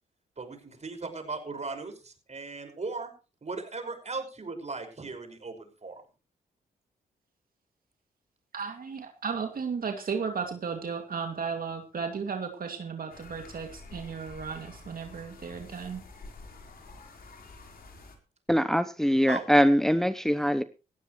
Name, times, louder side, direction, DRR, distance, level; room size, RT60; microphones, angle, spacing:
voice 1, 0.4-3.1 3.4-6.0 19.3-19.5, right 3 dB, 40° right, 5.7 m, -37 dB
voice 2, 8.5-16.0, right 5 dB, 55° right, 2.5 m, -34 dB
sound 1, 13.1-18.2, left 3 dB, 60° left, 4.4 m, -48 dB
voice 3, 18.5-20.6, equal, ahead, 0.9 m, -23 dB
17.5 x 14.5 x 3.2 m
supercardioid pair, 50°, 17 cm